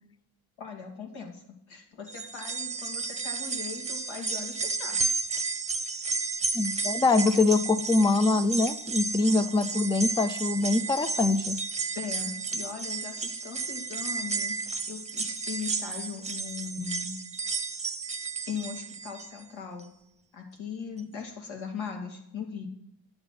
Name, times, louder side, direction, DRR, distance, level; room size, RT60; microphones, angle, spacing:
voice 1, 0.6-5.1 11.9-14.6 14.9-17.2 18.5-19.9 20.3-22.7, left 6 dB, 80° left, 3 dB, 2.8 m, -39 dB
sound 1, 2.1-19.4 19.8-19.9 21.0-21.1, right 4 dB, 15° right, 0.8 m, -32 dB
voice 2, 6.5-11.6, left 3 dB, 10° left, 13 dB, 0.4 m, -24 dB
11.0 x 8.0 x 5.9 m, 0.78 s
cardioid pair, 135°, 46 cm